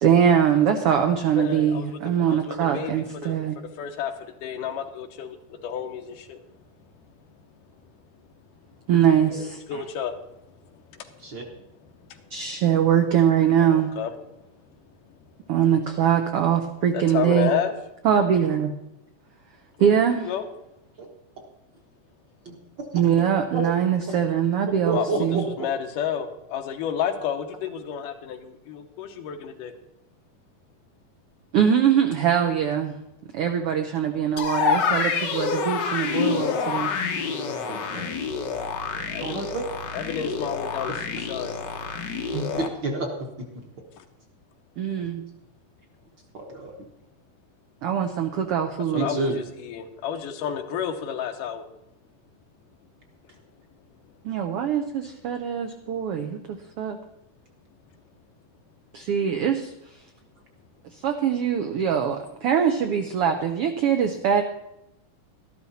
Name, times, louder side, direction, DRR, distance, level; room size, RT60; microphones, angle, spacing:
voice 1, 0.0-3.5 8.9-9.6 12.3-13.9 15.5-17.5 18.0-18.7 19.8-20.3 22.9-25.4 31.5-32.9 33.3-36.9 44.8-45.2 47.8-49.1 54.2-57.0 58.9-59.7 60.9-64.4, right 8 dB, 85° right, 6 dB, 1.3 m, -22 dB
voice 2, 1.4-2.0 2.3-2.9 3.2-3.4 3.8-6.4 9.3-10.3 10.7-11.6 12.0-12.4 13.7-14.1 16.9-17.7 19.8-20.0 20.3-20.4 24.9-29.7 36.1-36.6 38.9-39.6 39.9-41.6 44.0-44.1 48.9-51.6, left 8 dB, 90° left, 6 dB, 2.7 m, -31 dB
voice 3, 24.8-25.4 37.6-38.0 39.2-39.6 42.3-43.1 46.3-46.7 48.9-49.4, right 3 dB, 50° right, 1 dB, 1.5 m, -29 dB
sound 1, 34.4-42.7, left 5 dB, 70° left, 1.0 m, -27 dB
12.5 x 12.5 x 4.2 m, 0.86 s
omnidirectional pair, 3.6 m